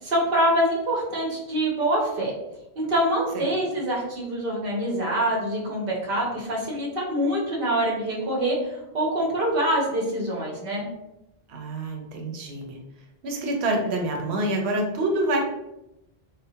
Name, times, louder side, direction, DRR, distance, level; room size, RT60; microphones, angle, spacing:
voice 1, 0.0-2.3 2.8-10.9, right 1 dB, 60° right, -3 dB, 0.9 m, -25 dB
voice 2, 11.5-12.8 13.2-15.4, right 1 dB, 90° right, 1 dB, 0.9 m, -27 dB
2.2 x 2.1 x 2.7 m, 0.89 s
omnidirectional pair, 1.1 m